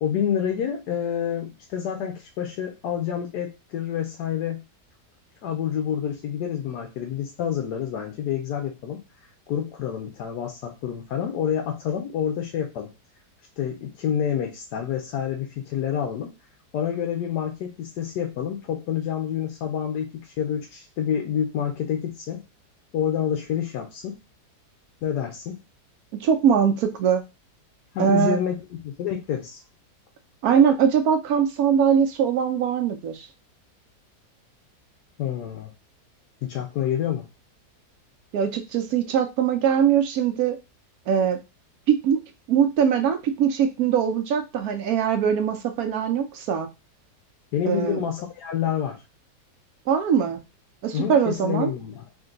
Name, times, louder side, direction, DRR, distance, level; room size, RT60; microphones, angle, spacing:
voice 1, 0.0-4.6 5.4-9.0 9.5-12.9 13.6-16.3 16.7-22.4 22.9-24.2 25.0-25.6 27.9-29.6 35.2-35.7 36.4-37.3 47.5-49.0 50.9-52.1, left 9 dB, 80° left, 3 dB, 1.2 m, -28 dB
voice 2, 26.1-27.2 28.0-28.4 30.4-33.3 38.3-40.6 41.1-41.4 41.9-42.2 42.5-46.7 47.7-48.0 49.9-50.4 50.8-51.7, right 8 dB, 70° right, 8 dB, 1.0 m, -21 dB
3.8 x 2.6 x 3.7 m, 0.26 s
omnidirectional pair, 1.8 m